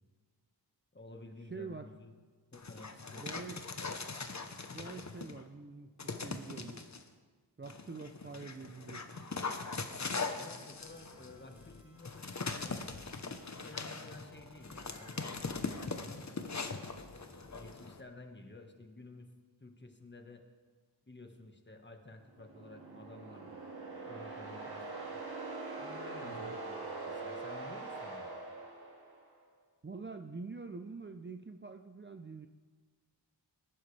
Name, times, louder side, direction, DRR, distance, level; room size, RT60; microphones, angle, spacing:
voice 1, 0.9-2.1 2.5-3.5 10.3-12.9 13.5-16.9 17.5-19.3 19.6-20.4 21.0-23.6 24.0-24.8 25.8-28.3, left 2 dB, 25° left, 4 dB, 1.5 m, -53 dB
voice 2, 1.5-1.9 3.2-3.6 4.7-6.8 7.6-9.3 26.2-26.6 29.8-32.5, right 4 dB, 25° right, 7 dB, 0.6 m, -46 dB
Dog, 2.5-5.4 6.0-7.0 7.6-18.0, left 4 dB, 40° left, 1.0 m, -41 dB
sound 1, 10.8-17.9, equal, 5° right, 4.8 m, -61 dB
sound 2, 22.3-29.3, right 3 dB, 60° right, 2.1 m, -43 dB
20.5 x 11.0 x 3.4 m, 1.5 s
wide cardioid pair, 70°, 42 cm